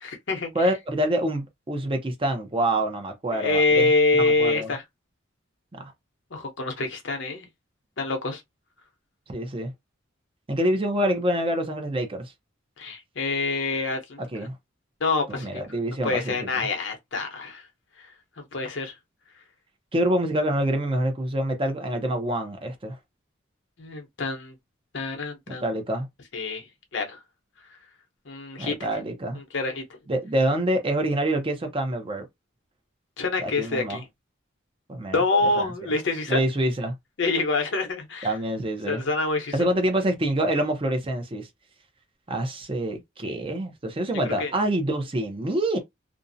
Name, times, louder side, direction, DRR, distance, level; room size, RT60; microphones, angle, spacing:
voice 1, 0.0-0.7 3.3-4.8 6.3-7.5 8.0-8.4 12.8-14.2 15.0-15.6 16.0-17.6 18.0-18.1 18.4-18.9 23.8-24.5 24.9-25.6 26.3-26.7 26.9-27.2 28.3-28.7 29.3-29.8 33.2-34.0 35.1-36.4 37.2-38.3 38.9-39.5 44.4-44.5, left 3 dB, 65° left, 0.8 m, -26 dB
voice 2, 0.5-3.9 4.2-4.7 5.7-5.9 9.3-9.7 10.5-12.3 14.2-14.5 15.4-16.7 19.9-23.0 25.5-26.1 28.6-29.4 30.1-32.3 33.4-34.0 34.9-35.2 35.6-35.7 36.3-36.9 38.2-39.0 39.5-41.5 42.3-45.8, right 1 dB, 25° right, 0.5 m, -26 dB
2.5 x 2.0 x 2.5 m
head